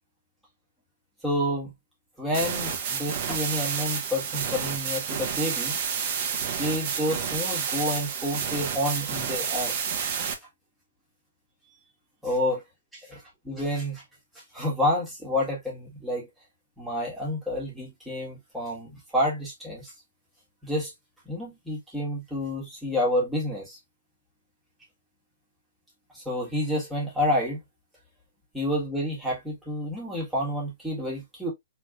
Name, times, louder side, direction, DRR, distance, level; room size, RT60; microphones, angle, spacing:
voice 1, 1.2-1.7 2.2-5.8 6.5-9.9 12.2-12.6 13.1-14.0 14.5-16.3 16.8-19.9 20.6-20.9 21.3-23.8 26.1-27.6 28.5-31.5, left 1 dB, 5° right, 1.8 m, -29 dB
sound 1, 2.3-10.3, right 7 dB, 40° right, 1.1 m, -30 dB
4.1 x 3.3 x 2.5 m
hypercardioid pair, 160°, 0 cm